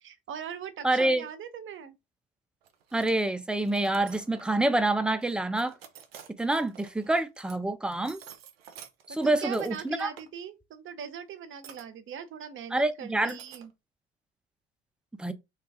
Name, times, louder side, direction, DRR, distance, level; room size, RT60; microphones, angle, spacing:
voice 1, 0.0-1.9 9.1-13.7, right 8 dB, 45° right, 0.6 m, -40 dB
voice 2, 0.8-1.3 2.9-5.7 6.4-8.2 9.1-10.1 12.7-13.4 15.2-15.3, right 2 dB, 5° right, 0.4 m, -27 dB
sound 1, 2.6-3.1 3.6-4.6 5.2-7.6 7.9-10.3 11.6-11.8 13.3-13.7, right 8 dB, 90° right, 0.5 m, -50 dB
2.4 x 2.4 x 3.4 m
hypercardioid pair, 50°, 29 cm